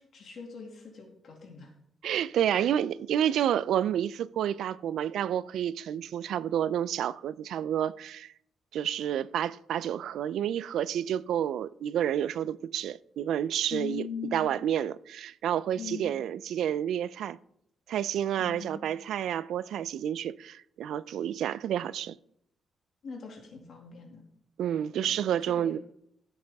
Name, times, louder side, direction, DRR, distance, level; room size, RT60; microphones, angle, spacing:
voice 1, 0.0-1.7 13.7-14.6 15.8-16.2 18.4-18.9 23.0-24.2 24.9-25.8, left 6 dB, 50° left, 2.3 m, -41 dB
voice 2, 2.0-8.3 8.7-14.1 14.3-17.4 17.9-22.2 24.6-25.8, right 10 dB, 75° right, 0.4 m, -29 dB
15.0 x 7.8 x 3.5 m
cardioid pair, 170°, 0 cm